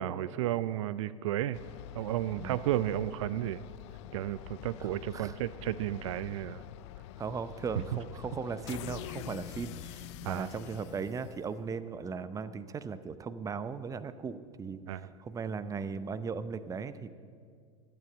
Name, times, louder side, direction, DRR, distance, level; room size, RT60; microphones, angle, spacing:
voice 1, 0.0-1.6 1.9-3.6 4.1-6.6 10.2-10.5 14.9-15.1, right 13 dB, 65° right, 16 dB, 0.4 m, -33 dB
sound 1, 1.5-11.8, left 13 dB, 60° left, 0.5 m, -46 dB
voice 2, 7.2-17.1, right 5 dB, 20° right, 13 dB, 0.7 m, -38 dB
12.0 x 9.2 x 7.8 m, 2.2 s
hypercardioid pair, 85°, 17 cm